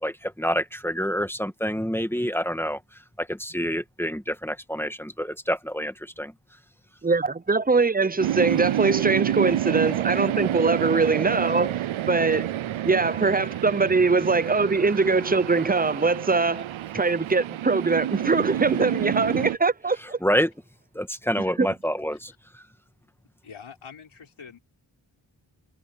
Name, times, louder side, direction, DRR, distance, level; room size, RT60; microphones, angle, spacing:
voice 1, 0.0-6.3 20.0-20.5 20.9-22.6, equal, 5° left, 1.9 m, -28 dB
voice 2, 7.0-12.5 12.8-16.7 16.9-20.2 21.6-21.7, right 4 dB, 20° right, 0.8 m, -22 dB
sound 1, 8.2-19.6, right 12 dB, 75° right, 0.6 m, -28 dB
voice 3, 23.4-24.6, left 6 dB, 80° left, 4.9 m, -45 dB
cardioid pair, 40°, 48 cm